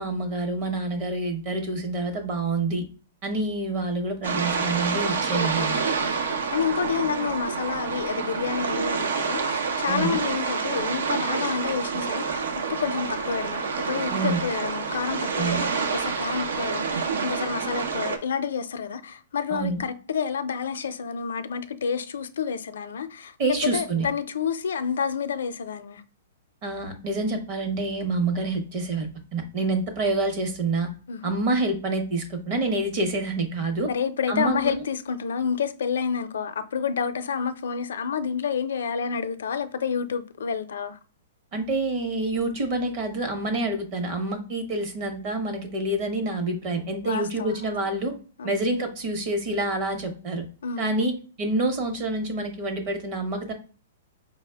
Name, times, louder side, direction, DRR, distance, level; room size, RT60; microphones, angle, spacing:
voice 1, 0.0-2.8 3.2-5.8 9.9-10.2 14.1-14.4 15.4-15.6 19.5-19.8 23.4-24.1 26.6-30.9 31.2-33.9 34.3-34.8 41.5-48.1 48.4-50.4 50.8-51.1 51.4-53.5, right 2 dB, 30° right, 0.8 m, -27 dB
sound 1, 4.2-18.2, right 5 dB, 90° right, 0.7 m, -28 dB
voice 2, 5.3-6.2 6.5-12.4 12.7-23.3 23.7-26.0 31.1-31.3 33.9-41.0 47.0-47.7 48.4-48.6 50.6-51.1, left 6 dB, 75° left, 0.5 m, -29 dB
4.8 x 2.0 x 3.3 m
hypercardioid pair, 175°, 0 cm